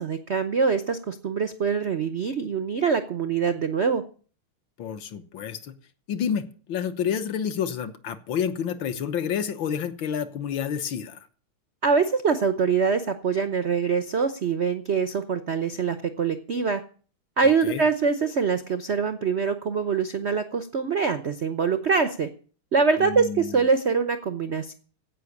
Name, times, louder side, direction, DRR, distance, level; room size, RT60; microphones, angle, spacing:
voice 1, 0.0-4.0 11.8-16.8 17.4-22.3 22.7-24.7, right 5 dB, 60° right, 10 dB, 0.6 m, -24 dB
voice 2, 4.8-5.7 6.1-11.3 17.6-17.8 23.0-23.6, left 8 dB, 65° left, 10 dB, 1.8 m, -29 dB
16.0 x 5.9 x 8.5 m, 0.41 s
omnidirectional pair, 2.4 m